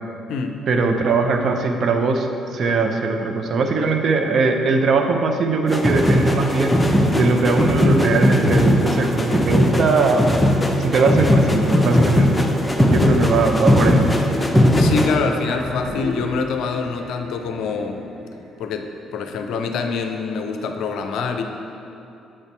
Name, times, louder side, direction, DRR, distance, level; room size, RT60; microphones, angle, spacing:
voice 1, 0.7-6.7 7.1-10.5 10.8-12.4 12.8-14.0, right 4 dB, 55° right, 4 dB, 0.6 m, -20 dB
sound 1, 5.7-15.2, left 1 dB, 10° left, 0.7 m, -18 dB
voice 2, 14.8-18.0 18.6-21.4, left 5 dB, 60° left, 5 dB, 0.5 m, -25 dB
sound 2, 15.4-20.0, left 1 dB, 90° right, 1.4 m, -35 dB
7.5 x 4.0 x 4.5 m, 2.8 s
figure-of-eight pair, 45°, 0 cm